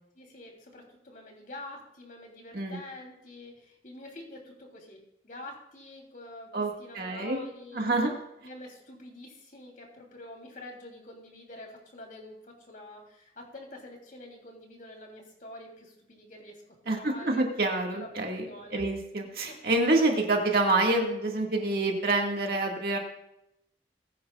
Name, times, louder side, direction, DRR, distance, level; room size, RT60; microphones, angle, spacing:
voice 1, 0.1-5.0 5.2-7.9 8.4-16.6 16.9-17.4 17.9-18.1 18.4-18.8 19.5-19.6, left 1 dB, 50° left, 0 dB, 3.2 m, -46 dB
voice 2, 6.5-7.4 7.7-8.1 16.9-23.0, right 2 dB, 55° right, 1 dB, 1.9 m, -27 dB
20.5 x 10.0 x 2.4 m, 0.81 s
head